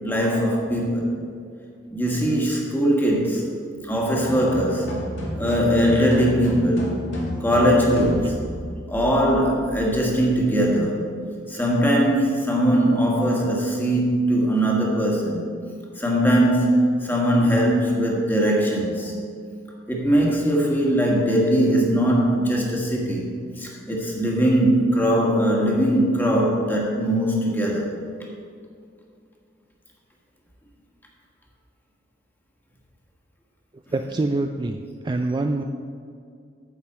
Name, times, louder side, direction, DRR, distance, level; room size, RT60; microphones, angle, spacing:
voice 1, 0.0-1.1 1.9-3.5 3.8-4.9 5.4-7.0 7.4-8.4 8.9-11.1 11.5-15.4 16.0-19.1 19.9-23.3 23.6-27.9 33.9-34.2, equal, 10° left, -2 dB, 1.6 m, -21 dB
sound 1, 4.0-8.7, left 1 dB, 80° left, 2.1 m, -31 dB
voice 2, 33.9-35.6, right 2 dB, 25° right, 5 dB, 0.3 m, -25 dB
9.8 x 8.0 x 4.3 m, 2.3 s
head